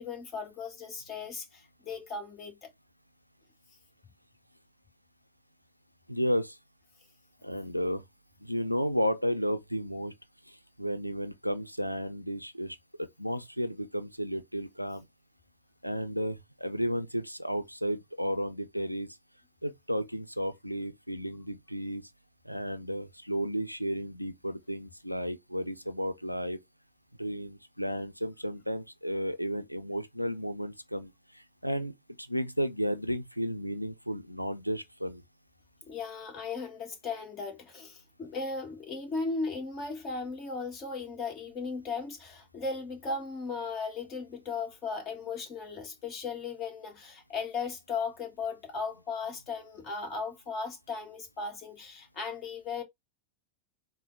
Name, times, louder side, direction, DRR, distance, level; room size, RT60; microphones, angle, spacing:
voice 1, 0.0-2.7 35.8-52.8, left 4 dB, 30° left, 1.5 m, -37 dB
voice 2, 6.1-6.6 7.4-8.1 8.4-10.1 10.5-15.1 15.8-19.1 19.6-22.1 22.4-26.6 27.2-35.2, equal, 90° right, 0.4 m, -33 dB
4.1 x 2.1 x 3.9 m
figure-of-eight pair, 90°, 0 cm